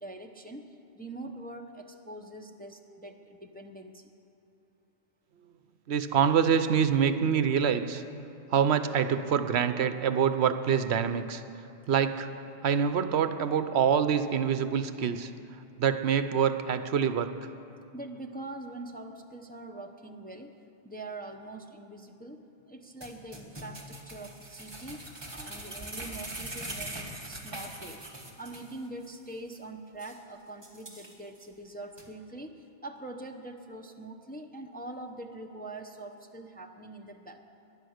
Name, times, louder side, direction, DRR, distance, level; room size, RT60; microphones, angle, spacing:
voice 1, 0.0-4.1 17.9-20.6 20.8-28.1 28.4-37.4, right 2 dB, 10° left, 3 dB, 0.7 m, -43 dB
voice 2, 5.9-8.0 8.5-11.4 11.9-12.3 12.6-15.3 15.8-17.3, right 7 dB, 70° right, 10 dB, 0.9 m, -25 dB
sound 1, 23.0-28.7 29.0-29.1 29.5-29.6 30.0-30.2 30.6-31.4 32.0-32.1, right 1 dB, 20° right, 1.7 m, -42 dB
19.5 x 11.0 x 6.5 m, 2.7 s
omnidirectional pair, 1.2 m